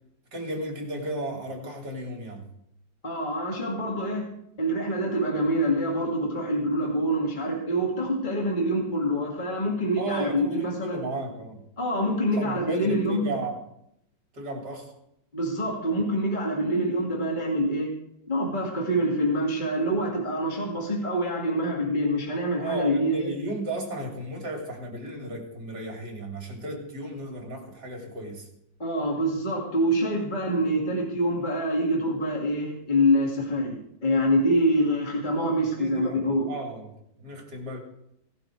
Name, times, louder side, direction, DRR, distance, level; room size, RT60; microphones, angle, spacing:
voice 1, 0.3-2.5 10.0-11.6 12.3-13.6 14.3-14.9 22.6-28.5 35.8-36.9 37.2-37.8, right 1 dB, 55° right, 2 dB, 4.0 m, -34 dB
voice 2, 3.0-4.3 4.6-11.0 11.8-13.3 15.3-17.9 18.3-23.3 28.8-36.5, equal, 25° left, -1 dB, 2.4 m, -26 dB
17.0 x 12.0 x 4.8 m, 0.77 s
omnidirectional pair, 2.1 m